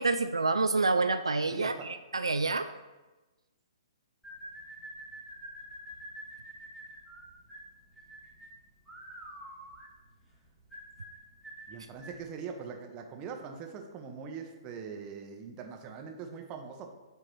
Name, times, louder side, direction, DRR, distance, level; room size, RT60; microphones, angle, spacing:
voice 1, 0.0-2.7, right 3 dB, 80° right, 9 dB, 0.3 m, -28 dB
voice 2, 1.5-1.9 11.7-16.9, right 6 dB, 25° right, 4 dB, 0.9 m, -42 dB
sound 1, 4.2-12.3, right 1 dB, 5° left, 1.5 m, -47 dB
8.9 x 3.0 x 4.5 m, 1.1 s
figure-of-eight pair, 120°, 3 cm